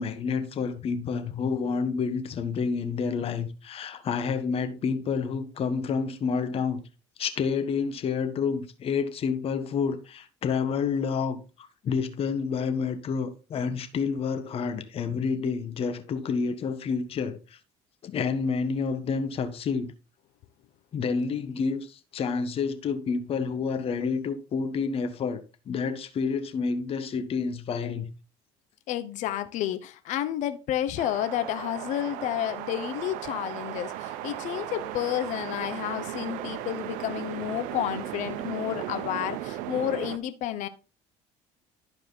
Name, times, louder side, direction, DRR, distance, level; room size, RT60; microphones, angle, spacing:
voice 1, 0.0-6.8 7.2-17.6 18.0-19.9 20.9-28.1, left 5 dB, 50° left, 1.5 m, -29 dB
voice 2, 28.9-40.7, left 12 dB, 70° left, 1.0 m, -31 dB
sound 1, 31.0-40.2, right 13 dB, 80° right, 0.9 m, -36 dB
11.5 x 4.8 x 4.1 m
supercardioid pair, 100°, 13 cm